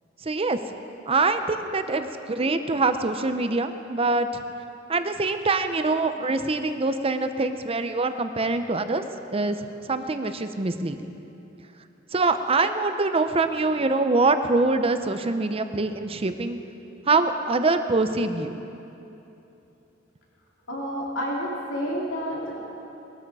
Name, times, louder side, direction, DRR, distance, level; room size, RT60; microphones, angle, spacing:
voice 1, 0.2-0.6 1.1-4.4 4.9-9.0 9.3-9.6 9.8-11.0 12.1-16.6 17.1-18.6, right 3 dB, 30° right, 9 dB, 0.7 m, -24 dB
voice 2, 20.7-22.6, equal, 85° left, -3 dB, 2.7 m, -29 dB
20.0 x 13.0 x 4.8 m, 2.9 s
head